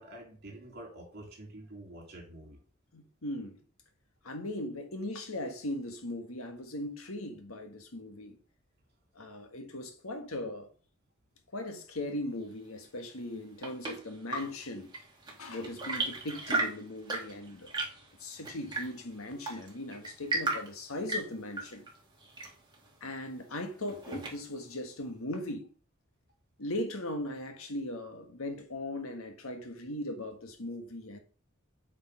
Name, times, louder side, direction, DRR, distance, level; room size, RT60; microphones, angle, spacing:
voice 1, 0.0-2.6, right 1 dB, 50° right, 3.4 m, -47 dB
voice 2, 2.9-3.6 4.2-8.4 9.1-10.7 11.5-14.9 15.4-17.7 18.2-21.9 23.0-25.7 26.6-31.2, left 1 dB, 85° left, 1.7 m, -39 dB
Chirp tweet / Engine / Tap, 13.2-24.7, right 2 dB, 20° right, 2.5 m, -37 dB
8.7 x 5.3 x 5.0 m
head